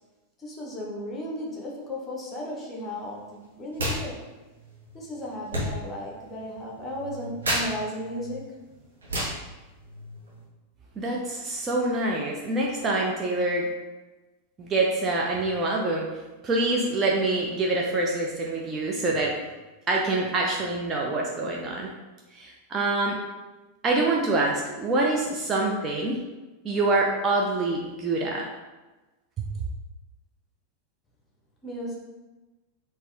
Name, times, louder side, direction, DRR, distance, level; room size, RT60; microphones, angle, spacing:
voice 1, 0.4-4.3 4.9-8.6 31.6-32.0, equal, 20° left, -2 dB, 1.0 m, -35 dB
sound 1, 3.7-4.0 4.3-10.5, equal, 70° right, 1.2 m, -33 dB
voice 2, 11.0-13.6 14.6-16.1 16.4-19.3 19.9-21.9 22.3-23.2 23.8-26.2 26.6-28.5 29.4-29.5, right 2 dB, 25° right, -2 dB, 0.5 m, -25 dB
4.0 x 2.6 x 3.4 m, 1.2 s
figure-of-eight pair, 90°, 0 cm